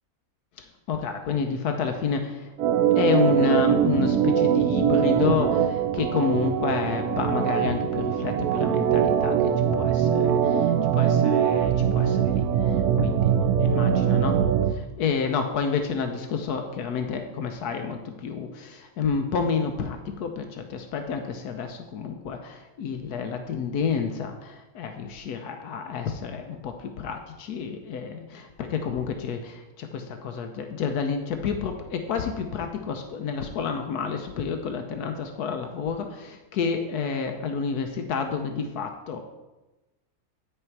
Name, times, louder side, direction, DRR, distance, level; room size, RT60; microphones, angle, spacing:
voice 1, 0.9-2.5 3.0-13.3 13.6-14.4 14.7-39.2, left 6 dB, 80° left, 5 dB, 1.2 m, -29 dB
Organ, 2.6-14.7, right 8 dB, 70° right, 1.0 m, -22 dB
9.1 x 6.7 x 4.6 m, 1.1 s
omnidirectional pair, 1.7 m